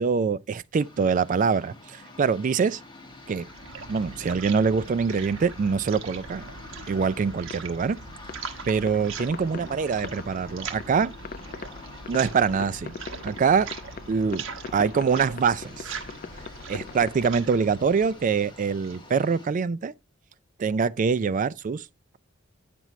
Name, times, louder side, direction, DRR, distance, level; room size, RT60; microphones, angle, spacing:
voice 1, 0.0-2.8 3.3-3.5 3.9-6.4 6.9-8.0 8.7-11.1 12.1-13.0 13.2-13.7 14.1-14.4 14.7-16.0 16.7-19.9 20.6-21.9, right 5 dB, 40° right, 0.3 m, -24 dB
sound 1, 0.7-19.5, left 2 dB, 25° left, 1.4 m, -47 dB
sound 2, 3.1-19.1, right 5 dB, 70° right, 1.1 m, -41 dB
sound 3, 4.7-6.3 7.4-17.3, left 5 dB, 45° left, 0.4 m, -42 dB
9.1 x 6.0 x 3.0 m
head